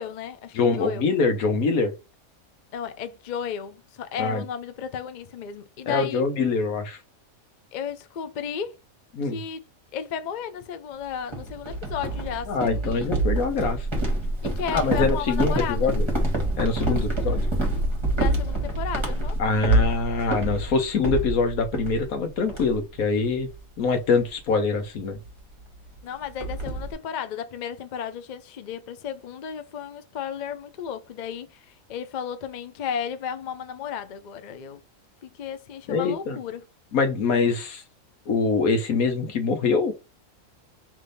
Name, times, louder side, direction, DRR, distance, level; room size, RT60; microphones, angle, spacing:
voice 1, 0.0-1.0 2.7-6.2 7.7-8.8 9.3-13.1 14.4-15.8 16.8-17.3 18.1-19.4 26.0-34.8 35.2-36.6, left 8 dB, 60° left, 0.4 m, -34 dB
voice 2, 0.5-1.9 4.2-4.4 5.9-7.0 9.1-9.4 12.5-13.9 14.7-16.1 16.6-17.5 19.4-23.5 23.8-25.2 35.9-36.4 36.9-37.8 38.3-39.9, left 4 dB, 85° left, 1.4 m, -24 dB
sound 1, 11.3-22.2 22.5-23.0 23.3-23.5 24.0-24.2 25.2-25.3 25.6-25.7 26.0-26.9, right 1 dB, 20° right, 1.2 m, -26 dB
3.4 x 3.3 x 3.9 m
omnidirectional pair, 1.5 m